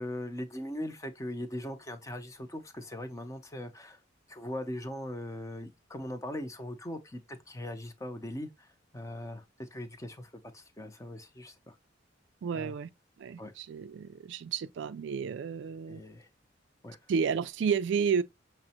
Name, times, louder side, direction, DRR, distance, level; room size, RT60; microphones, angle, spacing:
voice 1, 0.0-4.0 4.3-8.7 8.9-11.8 12.5-12.7 13.4-13.5 15.9-16.3 16.8-17.0, left 1 dB, 15° left, 0.6 m, -40 dB
voice 2, 12.4-12.9 13.2-16.0 17.1-18.2, right 6 dB, 65° right, 0.3 m, -31 dB
5.9 x 2.1 x 2.8 m
head